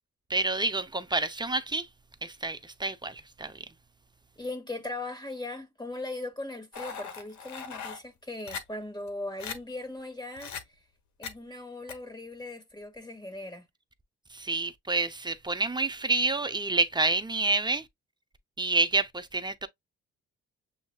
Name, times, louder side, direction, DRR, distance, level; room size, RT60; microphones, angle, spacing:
voice 1, 0.3-1.9 2.2-3.7 14.3-17.9 18.6-19.7, right 3 dB, 15° right, 0.7 m, -28 dB
voice 2, 4.4-10.5 11.2-13.6, left 2 dB, 15° left, 2.2 m, -39 dB
sound 1, 6.7-8.0 8.5-8.6 9.1-9.2 9.4-9.6 10.4-10.6 11.2-11.3 11.9-12.0, left 6 dB, 70° left, 1.1 m, -38 dB
7.3 x 2.7 x 2.3 m
cardioid pair, 90°, 30 cm